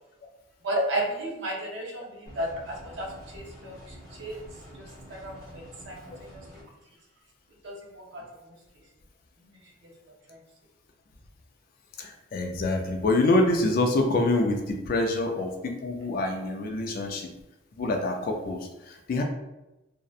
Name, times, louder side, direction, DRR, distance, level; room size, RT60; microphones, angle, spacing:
voice 1, 0.6-4.4 4.7-6.7 7.6-8.6 9.4-10.4, right 1 dB, 55° right, 0 dB, 0.5 m, -34 dB
sound 1, 2.3-6.6, equal, 15° left, 0.8 m, -47 dB
voice 2, 12.0-17.3 17.8-19.2, left 2 dB, 45° left, 3 dB, 0.3 m, -26 dB
2.6 x 2.1 x 2.3 m, 0.98 s
head